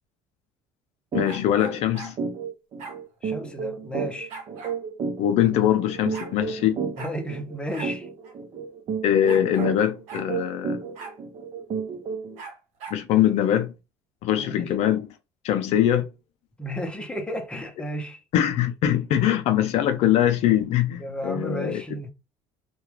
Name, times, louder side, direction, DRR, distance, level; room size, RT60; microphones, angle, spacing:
voice 1, 1.1-2.2 5.2-6.8 9.0-10.9 12.9-13.7 14.2-15.1 15.4-16.1 18.3-21.8, left 11 dB, 65° left, 0.4 m, -22 dB
sound 1, 1.1-1.3 1.6-1.8 2.2-12.4, right 6 dB, 50° right, 0.7 m, -32 dB
sound 2, 1.2-2.1 2.8-3.0 4.3-4.8 5.6-5.7 5.9-6.3 7.0-7.2 7.7-7.9 8.2-8.3 9.3-9.7 10.1-10.3 10.9-11.2 12.4-13.0, right 5 dB, 70° right, 0.9 m, -40 dB
voice 2, 3.2-4.3 7.0-8.1 14.4-14.7 16.6-18.2 21.0-22.1, equal, 10° left, 0.6 m, -33 dB
2.3 x 2.2 x 3.1 m
supercardioid pair, 105°, 12 cm